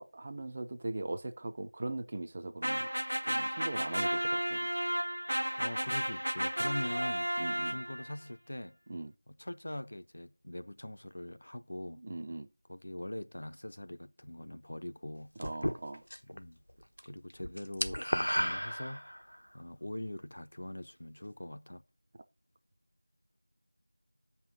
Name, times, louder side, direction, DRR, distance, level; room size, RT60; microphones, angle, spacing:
voice 1, 0.0-2.9 3.2-4.7 7.4-7.8 8.9-9.1 12.0-12.5 15.4-16.0, right 2 dB, 15° right, 0.5 m, -40 dB
sound 1, 2.6-8.1, equal, 65° right, 0.6 m, -33 dB
voice 2, 5.6-7.3 7.7-8.8 9.3-12.0 12.7-15.3 16.3-16.6 17.0-19.1 19.5-21.8, left 1 dB, 35° left, 0.6 m, -42 dB
sound 2, 15.4-16.4 16.7-17.0 17.3-19.4, equal, 80° left, 1.1 m, -33 dB
7.3 x 5.7 x 6.4 m
figure-of-eight pair, 175°, 0 cm